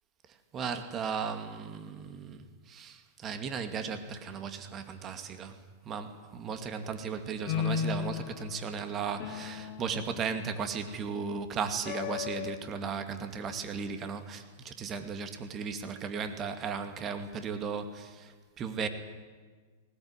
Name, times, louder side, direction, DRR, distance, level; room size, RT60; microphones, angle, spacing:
voice 1, 0.5-5.6 5.8-18.9, right 6 dB, 30° right, 8 dB, 2.3 m, -36 dB
sound 1, 7.5-12.6, left 7 dB, 50° left, 2.4 m, -36 dB
19.5 x 18.0 x 9.9 m, 1.5 s
hypercardioid pair, 105°, 0 cm